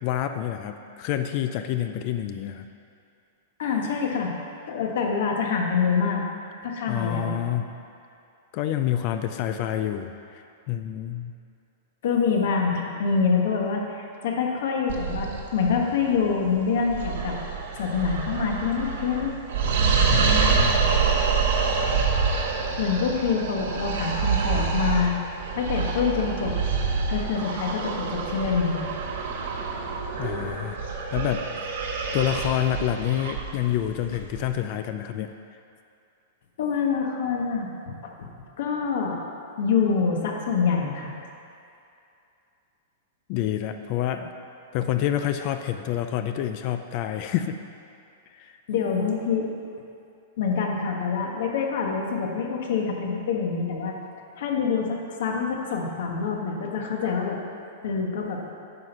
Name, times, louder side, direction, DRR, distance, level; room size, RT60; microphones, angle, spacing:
voice 1, 0.0-2.7 6.9-7.7 8.5-11.3 20.1-20.9 30.2-30.8 31.1-31.5 32.1-35.3 43.3-44.3 44.7-47.6 48.3-48.6, left 11 dB, 30° left, 8 dB, 0.3 m, -28 dB
voice 2, 3.6-4.3 4.7-6.2 6.6-7.4 12.0-17.4 17.8-19.3 22.8-25.1 25.5-26.5 27.1-28.8 36.6-38.3 38.6-41.1 48.7-49.5 50.4-54.0 54.4-57.4 57.8-58.4, left 5 dB, 55° left, 1 dB, 1.3 m, -26 dB
sound 1, 14.9-34.6, right 5 dB, 65° right, 1.3 m, -27 dB
9.6 x 6.0 x 5.5 m, 2.6 s
supercardioid pair, 175°, 0 cm